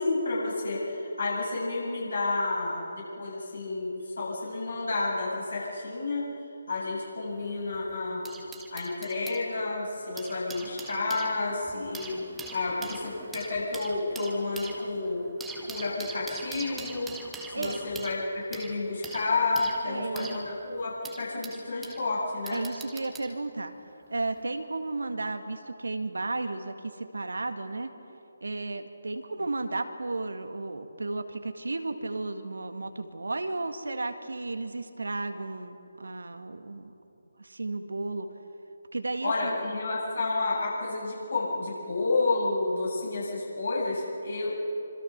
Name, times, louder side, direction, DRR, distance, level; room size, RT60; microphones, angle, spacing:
voice 1, 0.0-6.3 6.7-8.2 8.7-12.2 12.5-15.2 15.7-17.1 17.5-18.2 18.5-22.6 29.3-29.4 39.2-44.5, left 3 dB, 60° left, -5 dB, 7.7 m, -30 dB
sound 1, 7.3-9.4 10.0-22.0 22.5-23.3 24.2-24.4, right 3 dB, 5° right, 1.7 m, -43 dB
voice 2, 19.8-20.4 22.5-23.7 24.1-27.9 28.4-36.9 37.4-38.3 38.9-39.5, right 2 dB, 65° right, 8 dB, 1.9 m, -33 dB
26.5 x 26.0 x 6.1 m, 2.8 s
figure-of-eight pair, 145°, 0 cm